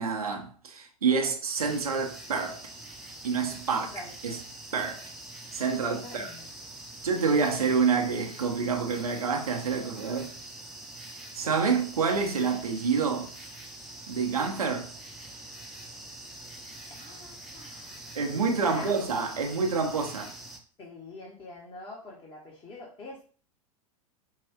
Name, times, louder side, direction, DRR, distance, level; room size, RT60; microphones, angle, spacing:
voice 1, 0.0-2.6 3.2-3.9 4.2-4.4 4.7-5.0 5.5-6.3 7.0-10.3 11.3-13.3 14.1-14.9 18.1-20.3, right 5 dB, 80° right, 1.1 m, -27 dB
sound 1, 1.6-20.6, right 1 dB, ahead, 0.9 m, -45 dB
voice 2, 3.5-4.5 5.9-6.5 16.9-18.1 18.6-19.0 20.8-23.2, left 2 dB, 30° left, 1.5 m, -45 dB
5.4 x 2.6 x 3.6 m
figure-of-eight pair, 95°, 18 cm